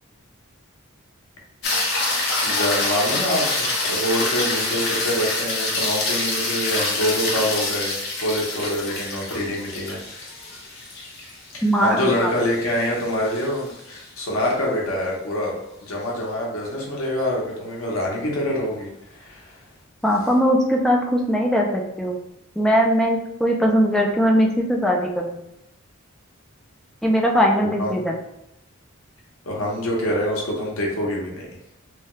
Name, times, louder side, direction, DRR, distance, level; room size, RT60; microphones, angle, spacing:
sound 1, 1.6-14.0 18.5-18.6, left 2 dB, 50° left, 0.7 m, -26 dB
voice 1, 2.4-8.0 8.2-10.0 11.5-15.5 15.8-19.6 27.8-28.1 29.4-31.4, left 1 dB, 85° left, -2 dB, 0.9 m, -25 dB
voice 2, 11.6-12.3 20.0-22.2 22.6-25.4 27.0-28.2, equal, ahead, 0 dB, 0.3 m, -20 dB
3.2 x 2.3 x 3.0 m, 0.84 s
head